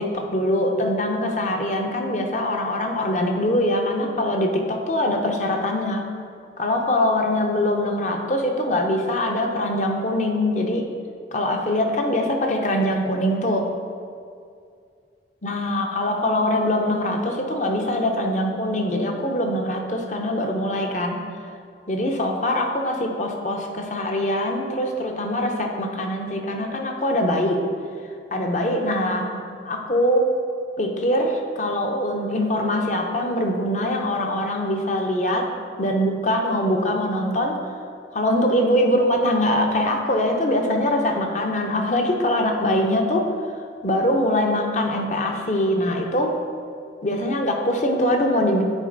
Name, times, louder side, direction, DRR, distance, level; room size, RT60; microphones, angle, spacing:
voice 1, 0.0-6.0 6.6-10.9 11.3-13.7 15.4-21.2 21.9-27.6 28.3-30.3 30.8-37.6 38.1-43.3 43.8-46.4 47.0-48.6, left 1 dB, 40° left, 3 dB, 0.7 m, -23 dB
9.7 x 4.3 x 3.9 m, 2.3 s
head